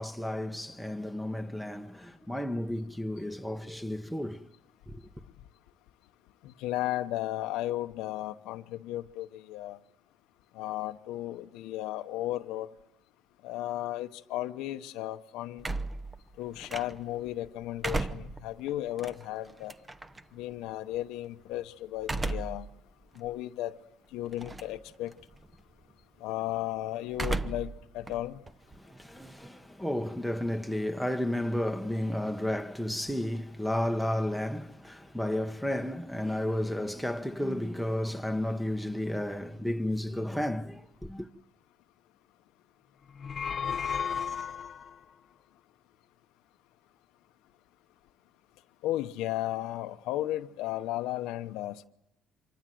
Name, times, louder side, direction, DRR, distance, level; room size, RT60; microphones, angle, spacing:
voice 1, 0.0-4.5 4.9-5.0 28.8-41.3, left 1 dB, ahead, 1.2 m, -32 dB
voice 2, 6.4-9.8 10.5-12.7 13.4-15.6 16.4-19.7 20.3-22.7 23.2-23.8 24.1-25.1 26.2-28.4 48.8-51.8, left 14 dB, 85° left, 1.0 m, -34 dB
sound 1, 15.6-17.2 17.6-20.2 22.0-22.7 23.2-23.3 24.3-24.8 25.1-25.5 27.1-27.8 28.1-29.5, right 2 dB, 15° right, 0.9 m, -35 dB
sound 2, 43.1-45.0, left 7 dB, 40° left, 0.9 m, -33 dB
26.5 x 24.0 x 7.8 m
cardioid pair, 120°, 0 cm